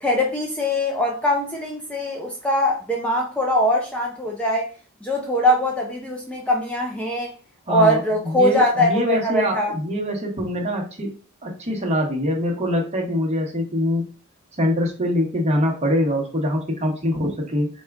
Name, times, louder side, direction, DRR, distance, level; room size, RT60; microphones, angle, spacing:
voice 1, 0.0-4.7 5.0-7.3 7.7-9.7, equal, 5° left, 0.5 m, -22 dB
voice 2, 7.7-11.1 11.4-14.0 14.6-17.7, left 1 dB, 30° right, 1.0 m, -23 dB
4.2 x 2.3 x 3.5 m
head